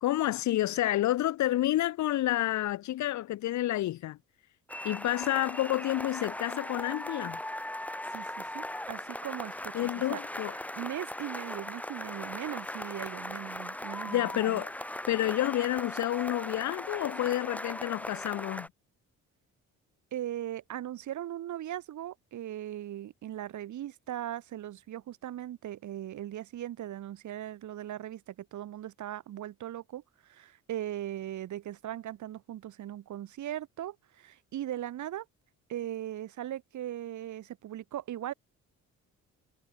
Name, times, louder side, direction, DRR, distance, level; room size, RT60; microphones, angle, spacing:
voice 1, 0.0-4.2 4.8-7.4 9.7-10.5 14.1-14.7 15.1-18.7, left 14 dB, 70° left, 0.8 m, -29 dB
sound 1, 4.7-18.7, left 1 dB, 5° left, 1.3 m, -39 dB
voice 2, 8.1-10.2 10.5-14.6 20.1-35.2 35.7-38.3, right 12 dB, 75° right, 3.4 m, -39 dB
cardioid pair, 90°, 30 cm